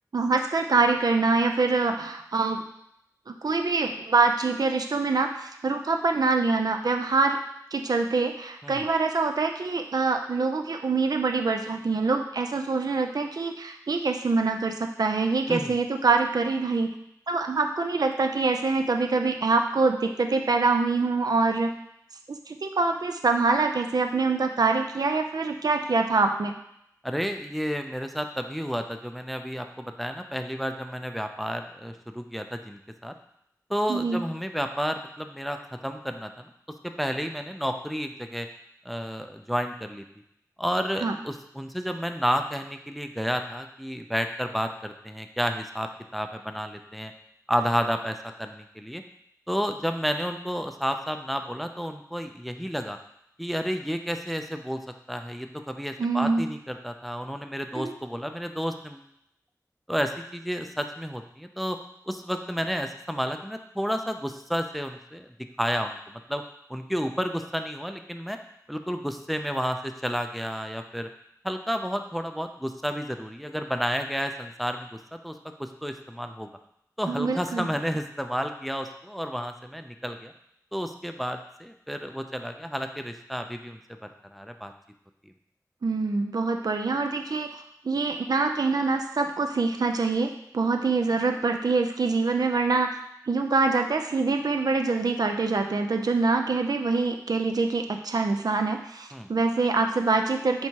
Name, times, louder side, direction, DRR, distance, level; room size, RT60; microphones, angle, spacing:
voice 1, 0.1-2.6 3.3-7.4 7.7-17.0 17.3-21.7 22.5-26.5 33.9-34.2 41.0-41.1 56.0-56.5 57.7-57.9 77.1-77.7 85.8-92.9 93.3-100.7, right 3 dB, 75° right, 5 dB, 0.4 m, -25 dB
voice 2, 27.0-33.1 33.7-36.5 36.8-38.5 38.9-40.0 40.6-47.1 47.5-49.0 49.5-53.0 53.4-54.8 55.1-59.0 59.9-61.8 62.1-65.3 65.6-66.4 66.7-68.4 68.7-71.1 71.4-75.0 75.2-75.3 75.6-76.5 77.0-80.3 80.7-83.8 84.3-84.7 99.1-99.3, equal, ahead, 6 dB, 0.4 m, -31 dB
4.5 x 3.3 x 2.8 m, 0.75 s
wide cardioid pair, 65°, 7 cm